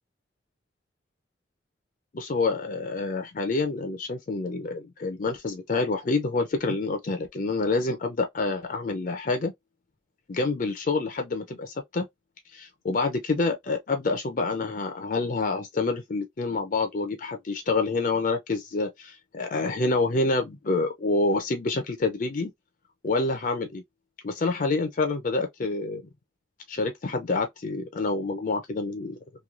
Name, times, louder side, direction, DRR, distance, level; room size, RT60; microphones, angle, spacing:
voice 1, 2.1-9.5 10.3-12.1 12.5-22.5 23.0-23.8 24.2-26.0 26.7-29.2, left 3 dB, 45° left, 0.5 m, -27 dB
3.0 x 2.2 x 2.4 m
head